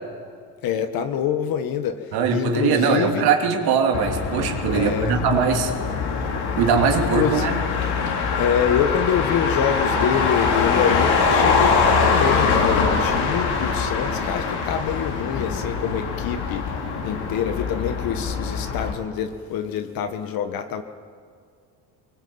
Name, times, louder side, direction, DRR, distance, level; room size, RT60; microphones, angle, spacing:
voice 1, 0.6-2.0 2.3-3.3 4.7-5.2 7.0-7.5 8.4-16.7 17.0-20.8, left 8 dB, 65° left, 7 dB, 1.5 m, -25 dB
voice 2, 2.1-5.7 6.6-7.6, right 6 dB, 75° right, 3 dB, 3.1 m, -21 dB
Motor vehicle (road), 3.9-18.9, left 5 dB, 80° left, 3.7 m, -23 dB
22.5 x 21.0 x 8.8 m, 2.1 s
cardioid pair, 135°, 38 cm